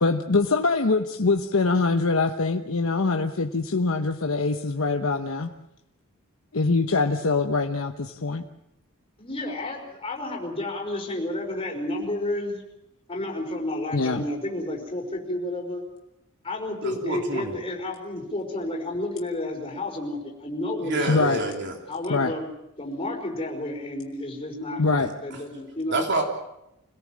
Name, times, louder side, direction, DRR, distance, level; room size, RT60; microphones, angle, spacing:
voice 1, 0.0-5.5 6.5-8.4 13.9-14.2 21.1-21.4 22.1-22.3 24.8-25.1, left 3 dB, 70° left, 5 dB, 1.0 m, -23 dB
voice 2, 9.2-12.6 13.1-15.8 16.4-21.4 21.9-22.4 22.8-26.1, left 1 dB, 25° left, 0 dB, 5.1 m, -31 dB
voice 3, 16.8-17.5 20.8-21.8 25.0-25.1 25.9-26.2, right 2 dB, 55° right, 2 dB, 3.2 m, -28 dB
26.0 x 17.5 x 7.5 m, 0.85 s
head